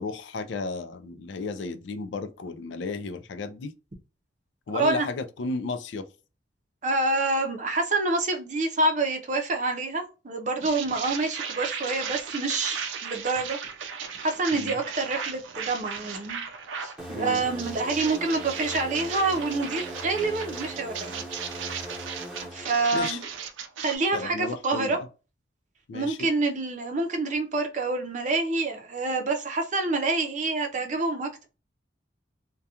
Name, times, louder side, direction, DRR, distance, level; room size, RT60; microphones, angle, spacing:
voice 1, 0.0-3.7 4.7-6.1 14.5-14.8 17.1-17.4 22.5-22.6 22.9-23.2 24.1-25.1 25.9-26.2, left 3 dB, 75° left, 0.4 m, -33 dB
voice 2, 4.7-5.1 6.8-13.6 14.2-16.4 16.8-21.2 22.5-23.2 23.8-25.0 25.9-31.4, right 3 dB, 40° right, 0.5 m, -27 dB
sound 1, 10.6-17.0 17.3-24.0, right 7 dB, 90° right, 0.5 m, -36 dB
sound 2, 17.0-23.5, equal, 5° right, 0.9 m, -40 dB
2.4 x 2.2 x 2.7 m
head